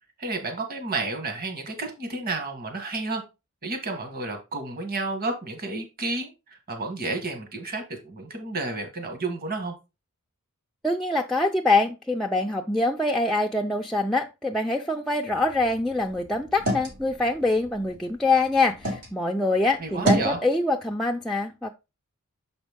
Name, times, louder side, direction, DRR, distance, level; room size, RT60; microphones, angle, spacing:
voice 1, 0.2-3.2 3.6-9.7 19.8-20.4, right 3 dB, 45° right, 1.5 m, -31 dB
voice 2, 10.8-21.7, left 2 dB, ahead, 0.4 m, -24 dB
sound 1, 15.3-19.1 19.5-20.4, right 1 dB, 85° right, 2.5 m, -31 dB
6.8 x 5.1 x 3.6 m
head